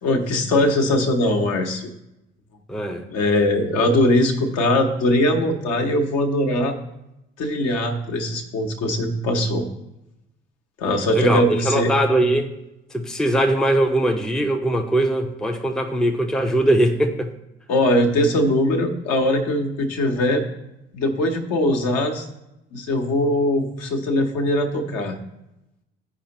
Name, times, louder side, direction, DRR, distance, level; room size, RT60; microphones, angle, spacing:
voice 1, 0.0-1.9 3.1-6.8 7.4-9.7 10.8-11.9 17.7-20.4 20.9-22.3 22.7-25.1, left 1 dB, 50° left, 1.2 m, -21 dB
voice 2, 2.7-3.0 11.1-12.5 12.9-17.3, right 1 dB, ahead, 0.7 m, -21 dB
14.0 x 5.0 x 2.9 m
figure-of-eight pair, 55°, 33 cm